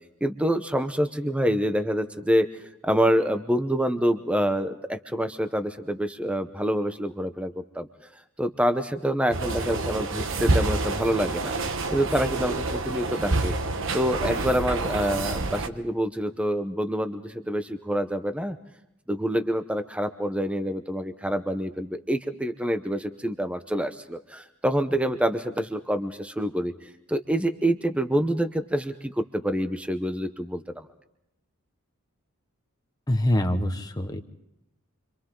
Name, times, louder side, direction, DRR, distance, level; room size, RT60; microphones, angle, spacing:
voice 1, 0.2-2.5 2.8-7.9 8.4-13.5 13.9-18.6 19.1-30.9, equal, 5° right, 8 dB, 0.8 m, -26 dB
sound 1, 9.3-15.7, right 2 dB, 60° right, 1.2 m, -28 dB
voice 2, 33.1-34.3, left 1 dB, 15° left, 5 dB, 1.2 m, -25 dB
30.0 x 25.5 x 3.8 m, 0.85 s
head